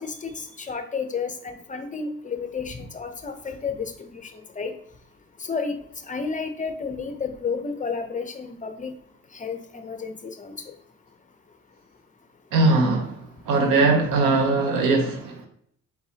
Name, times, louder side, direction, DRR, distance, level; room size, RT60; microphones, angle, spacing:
voice 1, 0.0-4.3 4.6-4.7 5.5-5.8 6.1-8.9 9.3-10.5, left 5 dB, 25° left, 0.7 m, -31 dB
voice 2, 12.5-15.5, right 3 dB, 90° right, 0.8 m, -21 dB
4.5 x 3.4 x 2.8 m
cardioid pair, 90°, 30 cm